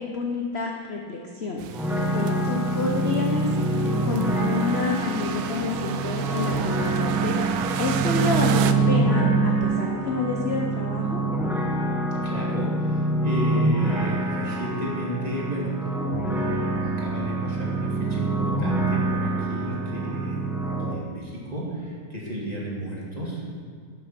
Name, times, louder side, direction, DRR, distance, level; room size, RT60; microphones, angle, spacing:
voice 1, 0.0-1.6 2.1-11.2, left 4 dB, 55° left, 0 dB, 0.7 m, -29 dB
sound 1, 1.6-8.7, right 8 dB, 75° right, 1.4 m, -33 dB
sound 2, 1.7-20.9, right 3 dB, 5° right, 0.4 m, -25 dB
voice 2, 12.2-15.9 16.2-20.4 20.9-23.4, right 1 dB, 20° right, -4 dB, 2.2 m, -33 dB
11.0 x 7.6 x 5.8 m, 2.1 s
omnidirectional pair, 2.3 m